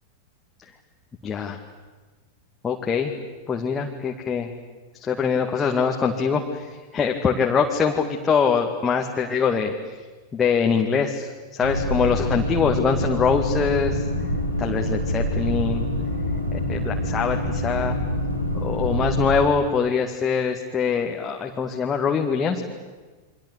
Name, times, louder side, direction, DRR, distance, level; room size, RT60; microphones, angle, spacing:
voice 1, 1.2-1.6 2.6-3.1 3.5-4.5 5.0-9.7 10.3-14.1 14.6-15.9 16.5-17.9 18.5-22.6, left 6 dB, 20° left, 1 dB, 2.2 m, -23 dB
sound 1, 11.6-19.3, equal, 85° right, 4.1 m, -26 dB
29.5 x 24.0 x 8.4 m, 1.3 s
figure-of-eight pair, 90°, 0 cm